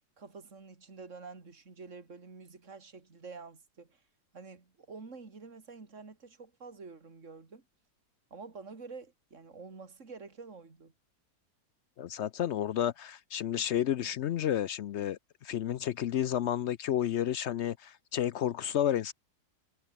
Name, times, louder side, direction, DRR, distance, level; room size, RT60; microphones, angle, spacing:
voice 1, 0.2-4.0 4.3-7.6 8.3-10.9, right 4 dB, 45° right, 3.3 m, -48 dB
voice 2, 12.0-19.1, left 10 dB, 70° left, 0.6 m, -31 dB
omnidirectional pair, 1.7 m